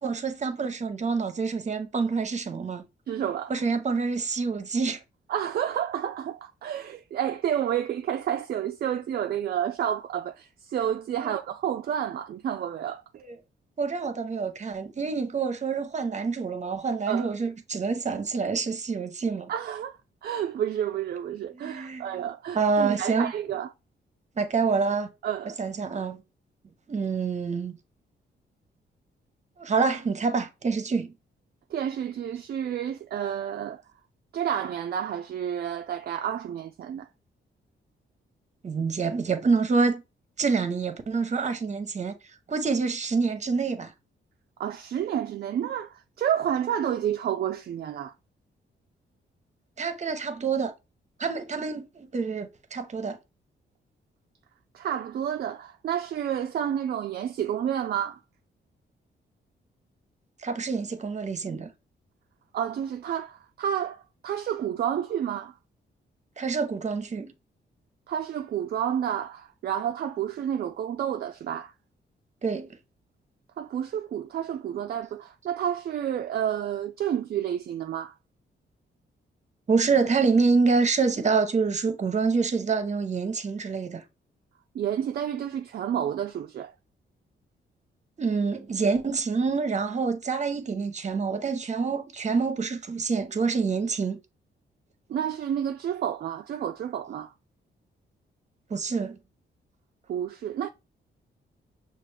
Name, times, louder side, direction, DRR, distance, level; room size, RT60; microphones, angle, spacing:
voice 1, 0.0-2.8 3.5-5.0 11.2-11.4 13.2-13.3 13.8-19.5 21.5-22.3 22.5-23.3 24.4-25.1 25.6-26.2 26.9-27.8 29.6-31.1 38.6-40.0 40.4-42.2 42.5-43.9 49.8-50.7 51.2-53.2 60.4-61.7 66.4-67.3 72.4-72.7 79.7-84.0 88.2-94.2 98.7-99.2, right 4 dB, 35° right, 0.8 m, -27 dB
voice 2, 3.1-3.5 5.3-13.0 17.1-17.3 19.5-20.0 20.2-23.7 25.2-25.6 31.7-33.8 34.3-37.1 44.6-48.1 54.7-58.2 62.5-65.5 68.1-71.7 73.6-78.1 84.7-86.7 95.1-97.3 100.1-100.7, right 9 dB, 50° right, 0.4 m, -30 dB
5.9 x 2.4 x 3.3 m
cardioid pair, 80°, 20 cm